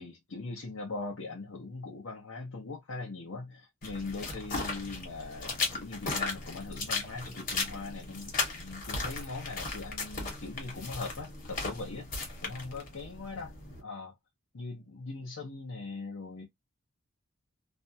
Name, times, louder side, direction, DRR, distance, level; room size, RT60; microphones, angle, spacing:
voice 1, 0.0-14.1 14.5-16.4, left 3 dB, 75° left, 0.8 m, -41 dB
sound 1, 3.8-13.8, left 3 dB, 40° left, 1.1 m, -36 dB
2.6 x 2.2 x 2.6 m
head